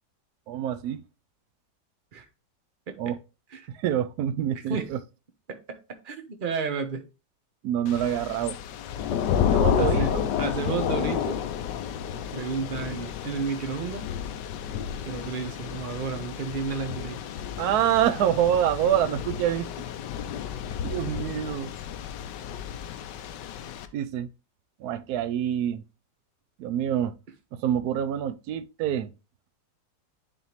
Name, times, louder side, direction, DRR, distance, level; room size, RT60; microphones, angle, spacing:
voice 1, 0.5-1.0 3.0-3.2 3.7-5.0 7.6-8.6 9.5-10.3 17.6-19.7 20.8-21.7 23.9-24.3 24.8-25.8 26.6-27.2 27.5-29.1, right 10 dB, 70° right, 1.0 m, -26 dB
voice 2, 4.5-4.9 5.5-5.8 6.0-7.0 9.8-10.1 10.4-11.4 12.3-14.1 15.0-17.2, right 5 dB, 40° right, 0.8 m, -32 dB
Thunder / Rain, 7.9-23.9, left 8 dB, 80° left, 1.2 m, -31 dB
10.0 x 3.5 x 3.0 m
omnidirectional pair, 1.9 m